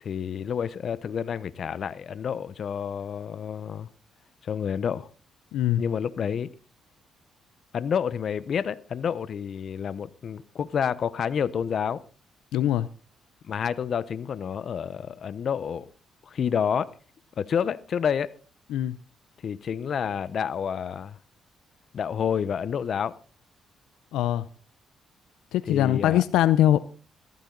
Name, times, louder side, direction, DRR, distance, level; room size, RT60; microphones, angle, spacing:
voice 1, 0.0-3.9 4.4-5.1 5.8-6.5 7.7-12.0 13.4-15.9 16.2-16.9 17.4-18.3 19.4-21.2 21.9-23.1 25.7-26.2, left 7 dB, 55° left, 0.9 m, -29 dB
voice 2, 5.5-5.8 12.5-12.9 18.7-19.0 24.1-24.5 25.5-26.8, left 12 dB, 90° left, 0.6 m, -22 dB
14.5 x 14.5 x 3.9 m
cardioid pair, 90°, 0 cm